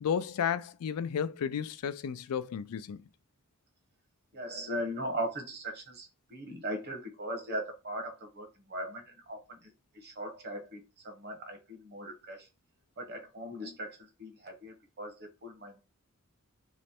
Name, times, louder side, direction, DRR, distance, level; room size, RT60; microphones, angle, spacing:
voice 1, 0.0-3.0, left 7 dB, 85° left, 0.4 m, -33 dB
voice 2, 4.3-9.6 9.9-12.4 13.0-15.8, right 1 dB, 50° right, 1.1 m, -39 dB
3.2 x 3.1 x 4.2 m
head